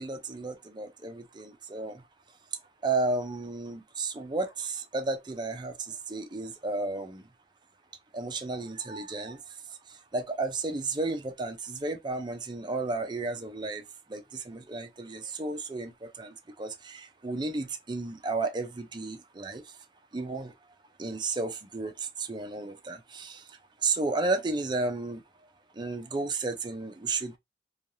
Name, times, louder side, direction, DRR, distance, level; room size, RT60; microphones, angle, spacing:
voice 1, 0.0-2.0 2.5-7.3 8.1-13.8 14.1-19.8 20.1-20.5 21.0-25.2 25.7-27.4, right 3 dB, 25° right, 0.5 m, -33 dB
3.1 x 2.3 x 2.6 m
head